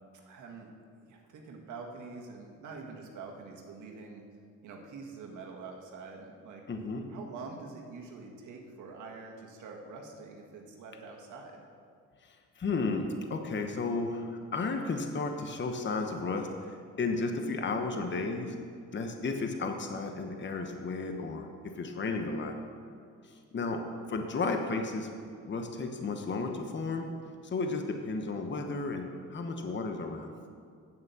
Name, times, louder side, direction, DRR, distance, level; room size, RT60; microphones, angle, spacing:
voice 1, 0.2-0.7 1.0-4.3 4.6-6.6 7.1-11.6, right 4 dB, 75° right, 1 dB, 1.7 m, -45 dB
voice 2, 6.7-7.0 12.2-18.5 18.9-22.5 23.2-25.1 25.4-27.1 27.5-30.3, left 3 dB, 40° left, 4 dB, 1.1 m, -33 dB
8.9 x 7.4 x 7.0 m, 2.2 s
cardioid pair, 90°, 30 cm